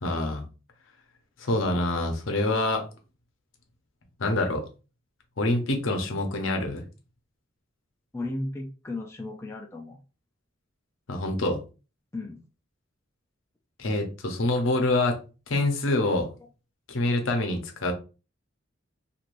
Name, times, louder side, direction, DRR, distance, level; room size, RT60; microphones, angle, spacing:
voice 1, 0.0-0.4 1.4-2.9 4.2-4.6 5.4-6.8 11.1-11.6 13.8-15.2 15.5-16.3 16.9-17.9, left 2 dB, 70° left, 5 dB, 0.8 m, -26 dB
voice 2, 8.1-10.0 12.1-12.4, left 2 dB, 15° left, 0 dB, 0.4 m, -35 dB
3.1 x 2.6 x 2.5 m, 0.32 s
head